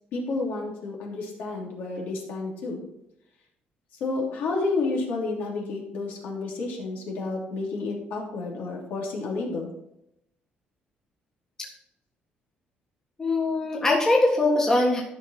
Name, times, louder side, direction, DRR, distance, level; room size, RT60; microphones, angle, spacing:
voice 1, 0.1-2.8 4.0-9.7, left 3 dB, 70° left, -2 dB, 3.0 m, -30 dB
voice 2, 13.2-15.0, left 2 dB, 15° left, -1 dB, 1.6 m, -22 dB
12.5 x 5.3 x 4.2 m, 0.81 s
cardioid pair, 150°, 3 cm